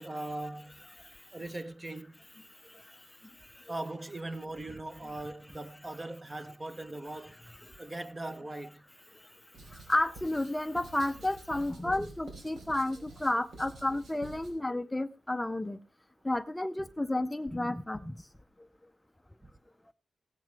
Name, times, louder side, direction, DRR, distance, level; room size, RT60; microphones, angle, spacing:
voice 1, 0.0-0.8 1.3-2.2 3.7-7.4 7.8-8.8 19.4-19.5, right 2 dB, 20° right, 1.0 m, -40 dB
voice 2, 2.6-3.0 3.2-3.6 7.7-7.8 9.1-9.3 9.7-15.8 16.2-18.2, left 1 dB, 10° left, 0.6 m, -32 dB
Writing, 9.5-14.5, right 2 dB, 75° right, 5.1 m, -49 dB
16.5 x 9.4 x 4.7 m
wide cardioid pair, 110°, 0 cm